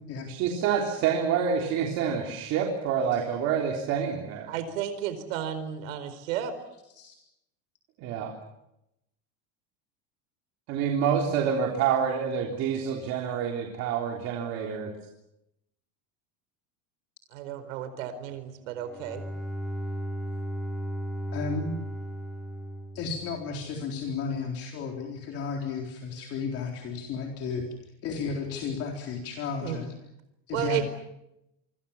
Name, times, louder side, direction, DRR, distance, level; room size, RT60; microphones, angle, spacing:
voice 1, 0.3-4.5 8.0-8.3 10.7-14.9, right 7 dB, 40° right, 1 dB, 3.6 m, -27 dB
voice 2, 4.5-6.5 17.3-19.3 29.6-29.8 30.5-30.8, right 10 dB, 85° right, 11 dB, 4.5 m, -33 dB
Bowed string instrument, 18.7-23.7, right 1 dB, ahead, 4.0 m, -35 dB
voice 3, 21.3-21.7 22.9-27.7 28.0-29.9 30.5-30.8, left 5 dB, 35° left, 1 dB, 4.0 m, -33 dB
28.0 x 24.5 x 7.3 m, 0.84 s
cardioid pair, 170°, 38 cm